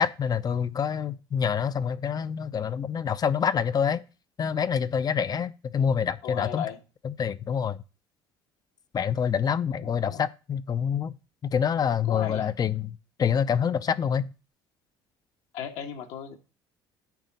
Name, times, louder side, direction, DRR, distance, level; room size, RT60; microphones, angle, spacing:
voice 1, 0.0-4.0 4.4-6.7 7.0-7.8 8.9-11.1 11.4-14.3, left 7 dB, 35° left, 0.6 m, -26 dB
voice 2, 6.2-6.8 9.8-10.2 11.8-12.5 15.5-16.4, left 9 dB, 75° left, 1.4 m, -36 dB
9.4 x 3.7 x 5.3 m
supercardioid pair, 80°, 11 cm